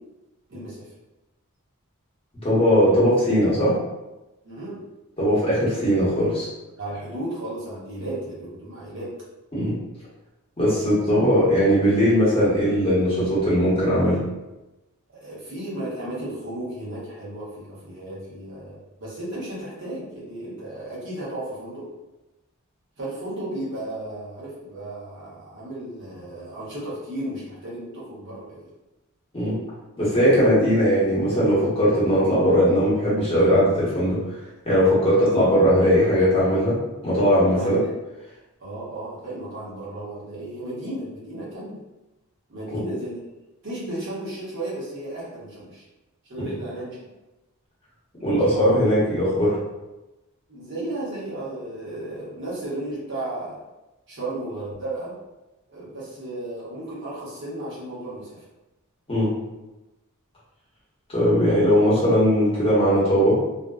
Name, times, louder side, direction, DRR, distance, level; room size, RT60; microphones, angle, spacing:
voice 1, 0.5-0.9 4.4-4.8 6.8-9.1 10.6-11.1 15.1-21.9 23.0-28.7 30.2-30.7 37.5-37.9 38.6-41.8 42.5-43.2 43.6-45.8 46.3-47.0 48.4-48.7 50.5-53.6 54.1-55.1 55.7-58.4, right 1 dB, 55° right, -7 dB, 1.0 m, -34 dB
voice 2, 2.4-3.7 5.2-6.5 9.5-9.7 10.6-14.2 29.3-29.6 30.0-34.2 34.6-36.8 37.0-37.8 48.2-49.6 59.1-59.3 61.1-63.4, equal, 25° left, -8 dB, 1.0 m, -19 dB
2.5 x 2.1 x 2.3 m, 1.0 s
head